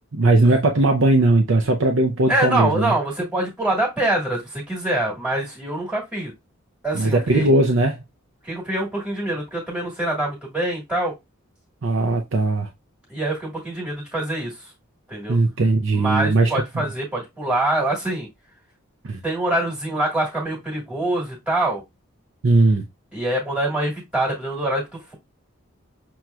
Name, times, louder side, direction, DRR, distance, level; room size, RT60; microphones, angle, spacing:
voice 1, 0.1-2.9 6.9-8.0 11.8-12.7 15.3-16.5 19.0-19.2 22.4-22.8, right 2 dB, 65° right, 0.6 m, -18 dB
voice 2, 2.3-6.3 6.8-7.5 8.4-11.1 13.1-14.7 15.1-15.4 15.9-18.3 19.2-21.8 23.1-25.1, right 1 dB, 5° right, 1.4 m, -25 dB
6.1 x 2.9 x 2.2 m
head